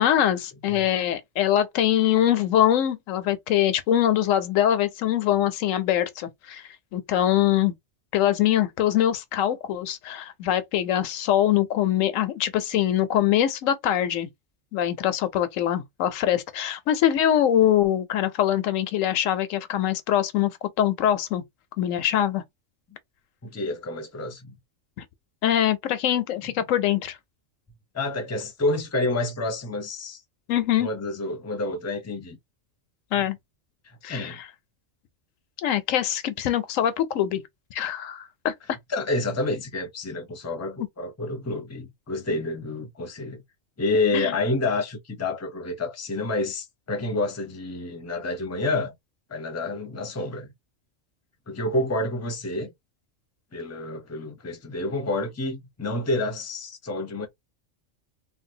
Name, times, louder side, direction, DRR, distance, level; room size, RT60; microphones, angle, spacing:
voice 1, 0.0-7.7 8.1-14.3 14.7-21.4 21.8-22.4 25.0-25.1 25.4-27.2 30.5-30.9 33.1-33.4 34.0-34.4 35.6-37.4 37.7-38.5 44.1-44.3, left 11 dB, 85° left, 1.0 m, -23 dB
voice 2, 23.4-24.5 26.4-26.5 27.9-30.2 30.8-32.4 33.1-33.2 33.8-34.4 38.9-43.4 43.8-48.9 49.3-50.5 51.5-52.7 53.5-57.3, left 2 dB, 15° left, 0.6 m, -29 dB
3.2 x 2.2 x 2.7 m
omnidirectional pair, 1.3 m